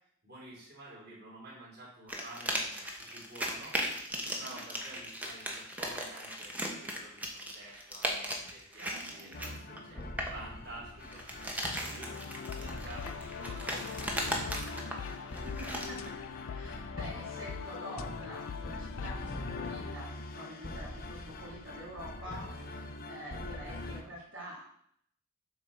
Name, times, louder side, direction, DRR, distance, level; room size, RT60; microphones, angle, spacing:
voice 1, 0.2-3.7 4.2-10.0 10.3-11.2 11.5-15.3 22.2-22.7, right 2 dB, 50° right, -6 dB, 3.6 m, -50 dB
sound 1, 2.1-10.4 11.0-16.1, equal, 10° right, 1.0 m, -37 dB
voice 2, 4.2-4.6 8.8-9.4 14.3-14.6 15.4-16.2 16.5-22.8 23.1-24.6, equal, 70° right, -7 dB, 3.3 m, -47 dB
sound 2, 9.3-24.0, left 2 dB, 45° left, 0.9 m, -43 dB
sound 3, 12.0-20.0, left 7 dB, 75° left, 0.3 m, -42 dB
7.7 x 4.4 x 6.7 m, 0.67 s
head